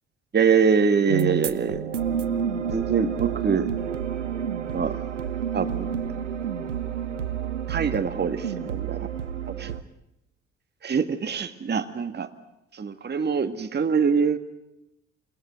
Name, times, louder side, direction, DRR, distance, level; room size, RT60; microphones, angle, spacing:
voice 1, 0.3-1.8 2.7-3.7 4.7-5.0 5.5-5.9 7.7-9.1 9.5-9.7 10.8-12.3 12.7-14.4, right 6 dB, 30° right, 8 dB, 1.8 m, -24 dB
sound 1, 1.1-9.8, right 8 dB, 85° right, 1.0 m, -29 dB
28.0 x 18.5 x 9.4 m, 0.90 s
figure-of-eight pair, 50°, 35 cm